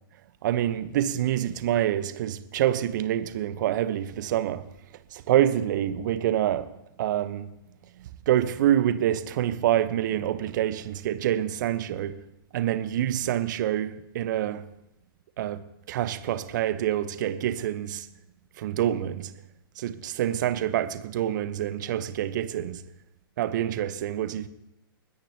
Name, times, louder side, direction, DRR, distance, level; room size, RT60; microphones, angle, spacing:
voice 1, 0.4-4.6 5.1-6.7 7.0-7.5 8.0-12.2 12.5-14.6 15.4-15.6 15.9-18.1 18.6-19.3 19.8-22.8 23.4-24.5, right 11 dB, 50° right, 1.0 m, -26 dB
30.0 x 10.0 x 3.0 m
figure-of-eight pair, 110°, 13 cm